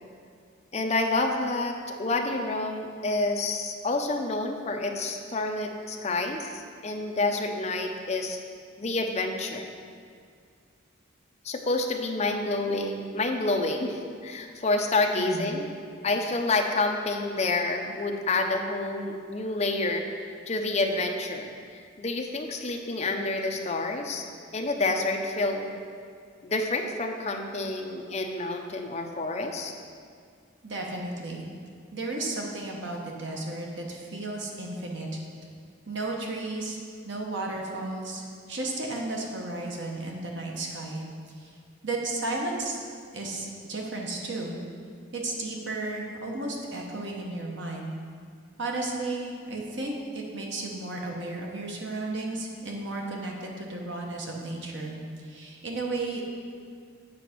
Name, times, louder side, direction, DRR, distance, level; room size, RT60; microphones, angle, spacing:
voice 1, 0.7-8.4 8.8-9.8 11.4-15.7 16.0-24.2 24.5-25.8 26.4-29.7, left 2 dB, 30° left, 3 dB, 0.5 m, -28 dB
voice 2, 15.2-15.5 30.6-31.4 31.9-35.2 35.9-36.8 37.0-41.1 41.4-41.5 41.8-42.8 43.1-44.6 45.1-48.0 48.6-56.2, right 2 dB, 60° right, -1 dB, 1.0 m, -33 dB
7.7 x 4.0 x 5.9 m, 2.2 s
head